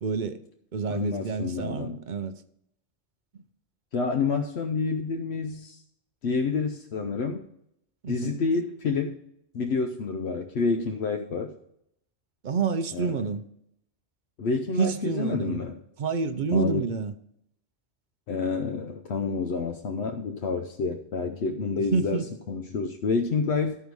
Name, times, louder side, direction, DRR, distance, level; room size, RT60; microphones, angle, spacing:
voice 1, 0.0-0.4 0.7-2.3 8.0-8.4 12.4-13.4 14.8-15.6 16.0-17.1 21.9-22.3, right 5 dB, 55° right, 0.7 m, -28 dB
voice 2, 0.9-2.0 3.9-5.8 6.2-7.5 8.1-9.2 9.5-11.5 12.9-13.1 14.4-15.8 16.5-16.9 18.3-23.8, left 4 dB, 70° left, 0.9 m, -28 dB
13.5 x 4.7 x 5.2 m
omnidirectional pair, 1.2 m